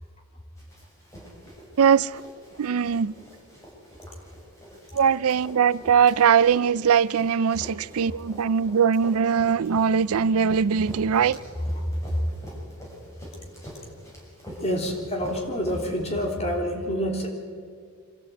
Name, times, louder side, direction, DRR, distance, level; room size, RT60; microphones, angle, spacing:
Run, 0.6-16.7, equal, 15° left, 6.4 m, -44 dB
voice 1, 1.8-2.1 2.6-3.1 4.9-11.4, right 7 dB, 80° right, 0.4 m, -21 dB
voice 2, 14.6-17.3, equal, 30° left, 3.3 m, -27 dB
25.5 x 14.0 x 8.5 m
head